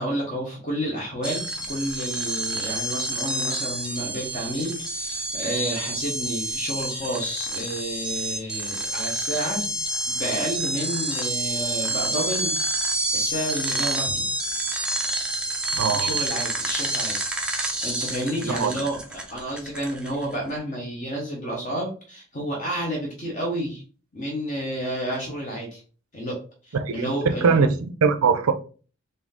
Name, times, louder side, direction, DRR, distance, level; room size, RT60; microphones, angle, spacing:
voice 1, 0.0-9.7 10.1-12.6 12.9-14.2 15.7-17.1 17.8-23.8 24.1-25.8 26.1-26.4 26.6-27.7, equal, 35° left, 1.0 m, -30 dB
musical top, 1.2-20.4, right 1 dB, 5° right, 0.4 m, -28 dB
voice 2, 15.8-16.1 18.6-18.7 26.8-28.5, right 5 dB, 85° right, 0.5 m, -21 dB
3.7 x 2.7 x 3.5 m
head